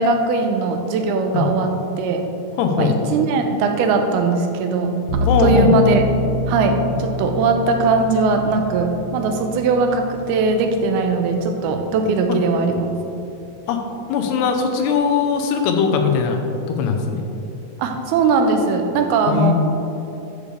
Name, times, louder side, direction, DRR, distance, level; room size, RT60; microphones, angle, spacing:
voice 1, 0.0-2.3 2.8-6.0 6.5-12.9 17.8-19.5, right 3 dB, 85° right, 5 dB, 2.6 m, -20 dB
voice 2, 2.6-2.9 5.3-5.8 12.3-12.4 13.7-13.8 14.1-17.2 19.3-19.5, left 5 dB, 85° left, 4 dB, 2.9 m, -20 dB
sound 1, 5.1-14.0, left 2 dB, 60° left, 3.0 m, -27 dB
13.5 x 6.8 x 3.3 m, 2.9 s
omnidirectional pair, 4.6 m